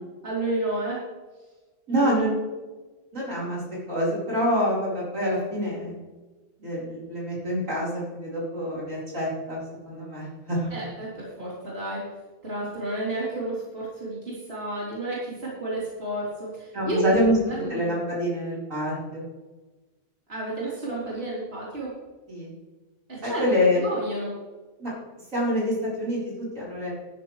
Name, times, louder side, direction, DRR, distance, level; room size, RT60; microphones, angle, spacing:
voice 1, 0.2-1.0 1.9-2.4 10.7-12.1 12.4-17.0 17.3-17.9 20.3-21.9 23.1-23.4 23.7-24.3, right 1 dB, 45° right, -7 dB, 4.2 m, -31 dB
voice 2, 1.9-2.3 3.1-3.6 3.9-6.0 6.6-9.6 9.8-10.7 16.7-17.4 17.7-19.2 22.3-22.5 23.2-23.8 24.8-24.9 25.3-26.9, equal, 65° right, -6 dB, 5.0 m, -26 dB
13.5 x 12.0 x 3.3 m, 1.2 s
omnidirectional pair, 1.4 m